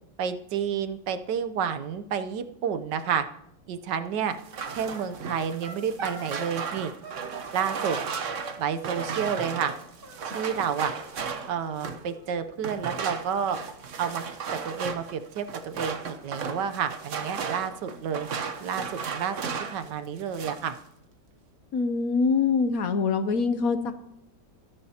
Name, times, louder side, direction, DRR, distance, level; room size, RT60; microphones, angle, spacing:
voice 1, 0.2-3.2 3.7-4.4 4.7-6.9 7.5-8.0 8.6-9.7 10.2-10.9 11.5-13.6 14.0-14.2 14.5-18.3 18.6-19.4 19.7-20.8, right 7 dB, 75° right, 10 dB, 1.4 m, -30 dB
sound 1, 4.4-12.1 12.6-19.9 20.2-20.7, right 6 dB, 50° right, 1.1 m, -35 dB
sound 2, 4.9-6.8 7.0-8.1 9.0-9.8 10.0-10.9 11.1-11.2 11.5-11.6 11.8-12.9, right 3 dB, 30° right, 1.8 m, -44 dB
voice 2, 21.7-23.9, left 5 dB, 60° left, 10 dB, 1.0 m, -24 dB
23.0 x 10.5 x 2.8 m, 0.76 s
omnidirectional pair, 1.9 m